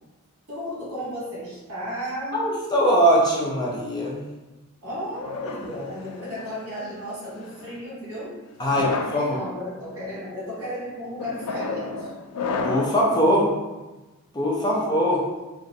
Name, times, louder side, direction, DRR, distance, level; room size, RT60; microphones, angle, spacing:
voice 1, 0.5-2.4 4.8-8.4 8.7-12.1 14.7-14.8, equal, 85° right, -7 dB, 1.4 m, -34 dB
voice 2, 2.3-4.3 8.6-9.4 12.6-13.5 14.3-15.2, equal, 20° left, -4 dB, 0.4 m, -21 dB
sound 1, 5.2-6.6 7.4-7.7 8.6-9.2 9.9-10.2 11.2-13.1, left 4 dB, 85° left, 0.3 m, -31 dB
3.0 x 2.4 x 2.6 m, 1.1 s
head